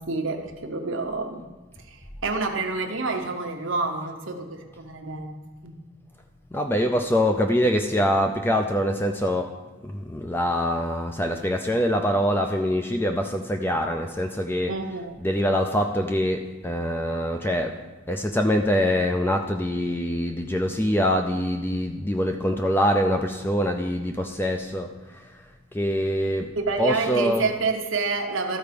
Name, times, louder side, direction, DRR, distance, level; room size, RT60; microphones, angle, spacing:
voice 1, 0.0-1.4 2.2-5.3 5.6-5.7 14.7-15.1 26.6-28.6, right 3 dB, 70° right, 4 dB, 1.0 m, -28 dB
voice 2, 6.5-9.5 9.8-14.7 15.2-17.7 18.1-24.9 25.7-27.5, equal, 10° left, 4 dB, 0.4 m, -24 dB
13.0 x 4.6 x 5.2 m, 1.2 s
head